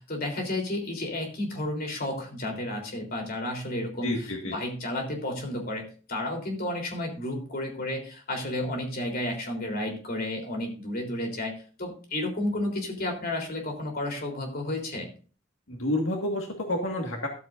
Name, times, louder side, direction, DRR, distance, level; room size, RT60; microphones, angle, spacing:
voice 1, 0.0-11.5 11.8-15.1, left 1 dB, 50° left, 2 dB, 3.8 m, -32 dB
voice 2, 4.0-4.6 15.7-17.3, left 1 dB, 80° left, 1 dB, 1.9 m, -29 dB
13.5 x 13.0 x 2.6 m, 0.39 s
head